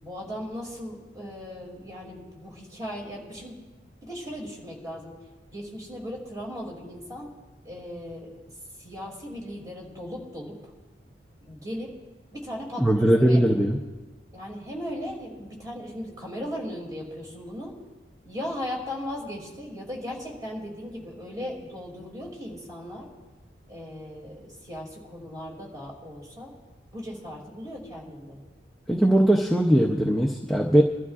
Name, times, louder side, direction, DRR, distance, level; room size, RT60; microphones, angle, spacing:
voice 1, 0.0-3.6 4.0-5.1 5.5-7.3 7.6-8.3 8.8-10.7 11.4-11.9 12.3-13.4 14.3-17.8 18.2-23.1 23.7-26.5 26.9-28.4, equal, 20° right, -2 dB, 2.6 m, -37 dB
voice 2, 12.8-13.8 28.9-30.8, right 1 dB, ahead, -1 dB, 0.6 m, -20 dB
22.5 x 12.5 x 2.4 m, 1.2 s
head